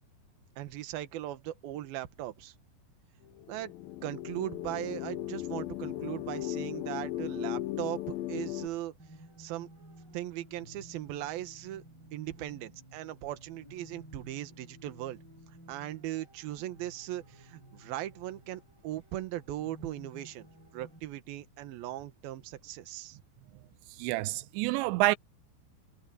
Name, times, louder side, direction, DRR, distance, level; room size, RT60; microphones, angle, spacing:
voice 1, 0.6-2.5 3.5-3.7 4.0-8.9 9.4-9.7 10.1-11.8 12.1-15.2 15.7-20.5 20.7-23.2, right 14 dB, 65° right, 2.9 m, -39 dB
sound 1, 3.4-8.7, left 14 dB, 85° left, 2.1 m, -37 dB
sound 2, 9.0-21.0, right 1 dB, 20° right, 8.0 m, -54 dB
voice 2, 24.0-25.2, right 19 dB, 90° right, 2.9 m, -28 dB
omnidirectional pair, 5.0 m